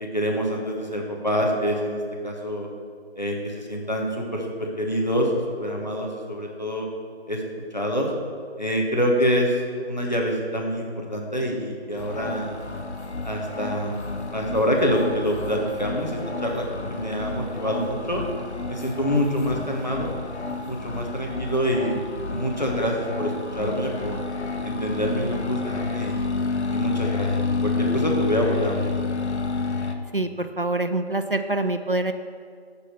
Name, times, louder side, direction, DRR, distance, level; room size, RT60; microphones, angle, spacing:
voice 1, 0.0-2.7 3.2-6.9 7.3-7.4 7.7-8.1 8.6-9.6 9.9-12.6 13.2-18.2 18.7-20.1 20.6-22.0 22.3-24.2 24.6-26.3 26.7-27.3 27.6-28.9, equal, 40° left, 0 dB, 1.1 m, -26 dB
sound 1, 12.0-29.9, left 4 dB, 85° left, 0.9 m, -30 dB
voice 2, 30.1-32.1, right 2 dB, 55° right, 8 dB, 0.4 m, -25 dB
6.5 x 5.6 x 6.0 m, 2.1 s
figure-of-eight pair, 175°, 33 cm